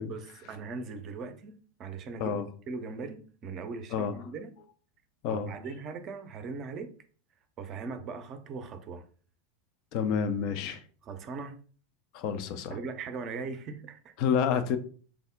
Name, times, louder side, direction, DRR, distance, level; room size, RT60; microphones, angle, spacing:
voice 1, 0.1-2.4 2.7-4.5 5.3-6.9 7.6-9.0 11.0-11.6 12.7-14.1, right 4 dB, 40° right, 0.5 m, -39 dB
voice 2, 9.9-10.8 12.1-12.8 14.2-14.8, left 7 dB, 50° left, 0.4 m, -29 dB
3.4 x 2.0 x 3.6 m
figure-of-eight pair, 85°, 0 cm